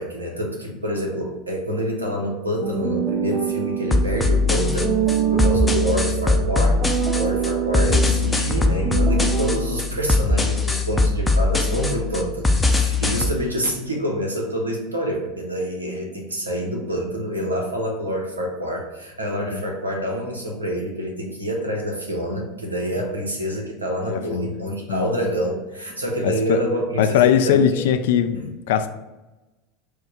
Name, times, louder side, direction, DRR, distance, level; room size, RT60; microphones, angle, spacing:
voice 1, 0.0-6.8 7.1-27.6 28.3-28.4, equal, 90° right, 1 dB, 0.8 m, -27 dB
sound 1, 2.6-9.6, right 9 dB, 35° right, 0.6 m, -25 dB
sound 2, 3.9-13.3, left 3 dB, 10° left, 0.5 m, -21 dB
voice 2, 24.1-24.6 24.9-25.1 26.2-26.6 27.0-28.9, left 9 dB, 65° left, 9 dB, 0.3 m, -20 dB
4.6 x 2.2 x 4.7 m, 1.1 s
figure-of-eight pair, 80°, 0 cm